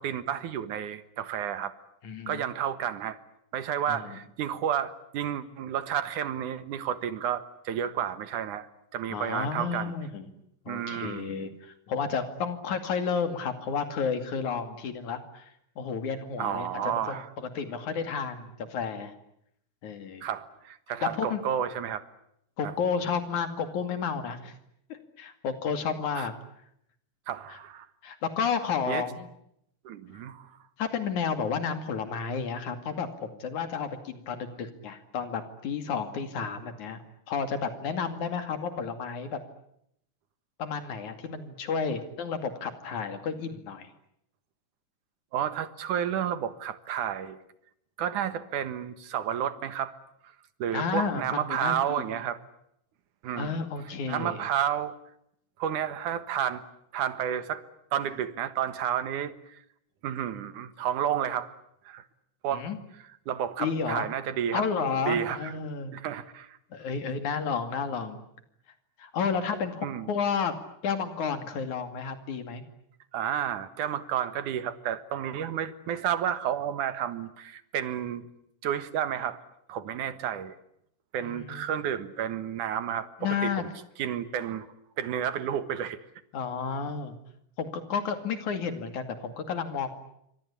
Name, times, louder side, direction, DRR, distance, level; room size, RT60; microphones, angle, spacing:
voice 1, 0.0-1.7 2.3-3.2 3.5-8.7 8.9-9.9 10.7-11.4 16.4-17.3 20.2-22.0 26.2-26.3 27.3-27.9 28.9-29.0 29.8-30.5 45.3-47.4 48.0-49.9 50.6-52.4 53.2-53.6 54.1-54.9 55.6-56.6 56.9-57.6 57.9-59.6 60.0-61.5 61.9-62.0 62.4-62.7 63.3-64.6 65.0-65.5 65.9-66.6 69.8-70.1 73.1-78.3 78.6-79.4 79.7-80.5 81.1-83.7 84.0-84.7 85.0-86.0, right 9 dB, 85° right, 12 dB, 3.0 m, -31 dB
voice 2, 2.0-2.5 3.9-4.2 9.1-10.3 10.7-19.1 19.8-20.2 21.0-21.4 22.6-24.5 25.2-26.3 27.5-27.6 28.0-29.3 30.8-37.0 37.3-39.4 40.6-43.9 50.7-52.0 53.4-54.5 62.5-62.8 63.6-64.1 64.5-65.9 66.7-68.2 69.0-70.5 70.8-72.6 81.2-81.7 83.2-83.7 86.3-87.2 87.6-89.9, left 6 dB, 75° left, 8 dB, 3.8 m, -31 dB
28.0 x 24.5 x 8.5 m, 0.74 s
omnidirectional pair, 3.5 m